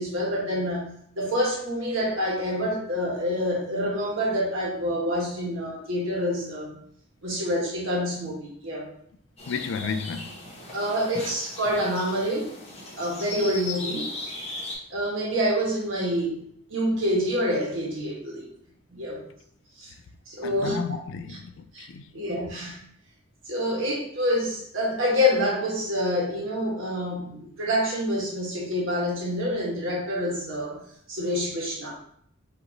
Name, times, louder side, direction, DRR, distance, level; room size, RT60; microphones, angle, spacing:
voice 1, 0.0-6.8 7.2-8.9 10.7-12.5 13.0-14.1 14.9-16.4 16.7-18.5 18.9-19.2 19.8-19.9 20.3-20.8 21.3-21.4 21.7-21.9 22.1-22.8 23.5-30.8 31.1-31.9, equal, 70° right, 1.5 m, -27 dB
sound 1, 9.4-14.7, left 2 dB, 35° left, 1.1 m, -38 dB
voice 2, 9.5-10.3 20.4-22.0, left 6 dB, 65° left, 0.3 m, -33 dB
5.1 x 2.8 x 2.9 m
head